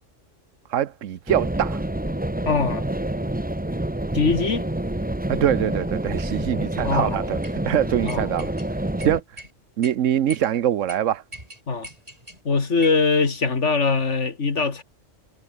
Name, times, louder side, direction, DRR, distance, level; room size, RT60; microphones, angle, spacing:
voice 1, 0.7-1.8 5.3-9.4 9.8-11.2, right 10 dB, 80° right, 1.2 m, -24 dB
sound 1, 1.3-9.2, right 1 dB, 10° right, 1.1 m, -27 dB
voice 2, 2.5-2.8 4.1-4.7 6.8-7.2 8.0-8.3 11.7-11.9 12.4-14.8, left 4 dB, 65° left, 2.5 m, -22 dB
sound 2, 7.4-7.6 8.1-8.7 9.0-9.5 9.8-9.9 10.3-10.5 10.9-11.0 11.3-12.4 12.8-13.0, right 1 dB, 30° right, 7.6 m, -40 dB
omnidirectional pair, 1.3 m